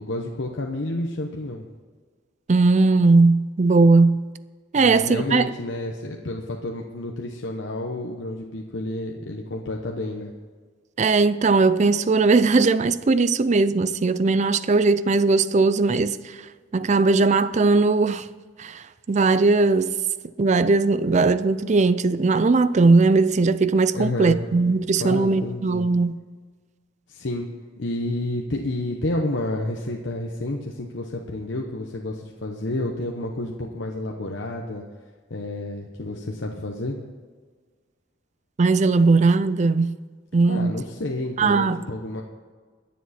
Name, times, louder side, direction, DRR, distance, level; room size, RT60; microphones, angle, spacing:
voice 1, 0.0-1.6 4.7-10.3 23.9-24.4 25.0-25.9 27.1-27.5 27.8-34.8 35.3-37.0 40.5-42.2, left 1 dB, 70° left, 1.0 m, -30 dB
voice 2, 2.5-4.3 4.7-5.5 11.0-16.2 16.7-18.3 18.6-19.9 20.4-26.2 38.6-39.9 40.3-40.7 41.4-41.8, right 3 dB, 40° right, 0.4 m, -19 dB
22.0 x 7.5 x 4.3 m
head